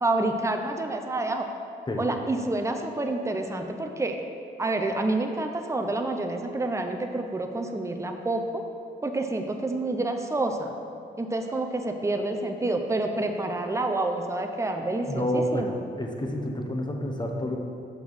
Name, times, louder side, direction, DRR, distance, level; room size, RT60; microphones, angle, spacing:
voice 1, 0.0-1.4 2.0-4.2 4.6-8.6 9.0-10.7 11.2-15.8, right 2 dB, 15° right, 4 dB, 0.7 m, -28 dB
voice 2, 15.1-15.7 16.0-17.6, left 1 dB, 25° left, 2 dB, 1.1 m, -29 dB
5.8 x 5.6 x 6.2 m, 2.6 s
cardioid pair, 65°, 19 cm